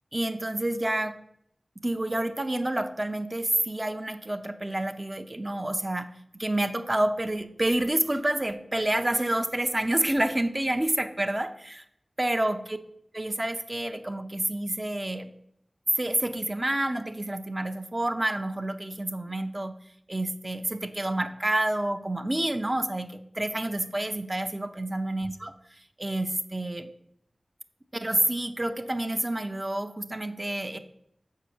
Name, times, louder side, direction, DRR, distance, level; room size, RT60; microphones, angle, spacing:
voice 1, 0.1-1.2 1.8-11.8 12.2-12.8 13.1-15.3 16.0-19.7 20.1-25.5 26.0-26.9 27.9-30.8, right 1 dB, 30° right, 9 dB, 0.7 m, -28 dB
6.9 x 4.8 x 6.6 m, 0.74 s
wide cardioid pair, 60°, 0 cm